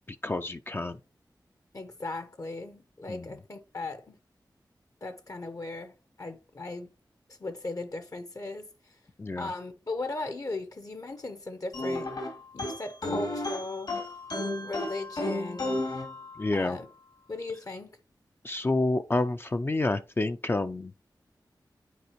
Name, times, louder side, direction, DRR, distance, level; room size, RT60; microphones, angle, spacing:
voice 1, 0.2-1.0 3.1-3.3 9.2-9.5 16.4-16.8 18.4-20.9, left 2 dB, 30° left, 0.4 m, -29 dB
voice 2, 1.7-4.2 5.0-5.9 6.2-6.9 7.4-8.7 9.4-12.1 12.5-13.9 14.6-15.8 16.5-16.9 17.3-18.0, left 2 dB, 50° left, 0.8 m, -37 dB
sound 1, 11.7-16.8, left 2 dB, 75° left, 2.8 m, -33 dB
9.4 x 4.2 x 2.9 m
wide cardioid pair, 60°, 8 cm